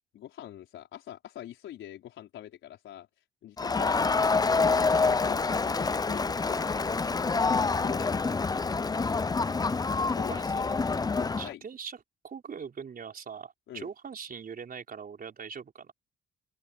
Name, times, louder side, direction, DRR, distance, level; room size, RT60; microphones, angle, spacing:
voice 1, 0.1-3.1 3.4-7.3 7.7-8.3 10.1-10.7 11.1-11.6 13.7-13.9, left 12 dB, 80° left, 4.8 m, -44 dB
Crowd, 3.6-11.5, left 4 dB, 20° left, 0.6 m, -27 dB
voice 2, 9.9-10.4 11.4-12.0 12.2-15.9, right 6 dB, 45° right, 4.7 m, -41 dB
open air
cardioid pair, 90°, 20 cm